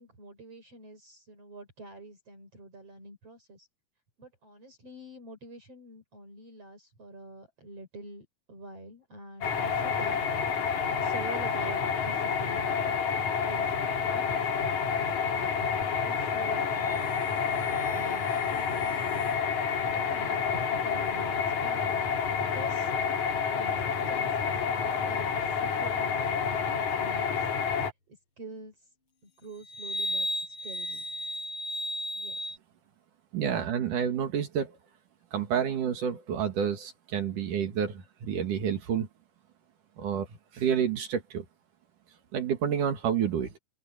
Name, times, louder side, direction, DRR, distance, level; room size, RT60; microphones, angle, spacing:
voice 1, 0.0-3.7 4.2-14.4 14.8-15.6 16.0-19.4 20.1-21.9 22.4-23.0 23.5-27.5 28.1-28.9 29.2-31.0 32.2-32.6, right 2 dB, 45° right, 6.6 m, -47 dB
sound 1, 9.4-27.9, left 6 dB, 60° left, 3.7 m, -29 dB
sound 2, 16.6-22.9 29.6-32.6, left 1 dB, 35° left, 8.4 m, -38 dB
voice 2, 33.3-34.8 35.3-39.1 40.0-40.3 40.5-41.4 42.3-43.5, right 8 dB, 70° right, 3.5 m, -29 dB
open air
omnidirectional pair, 3.8 m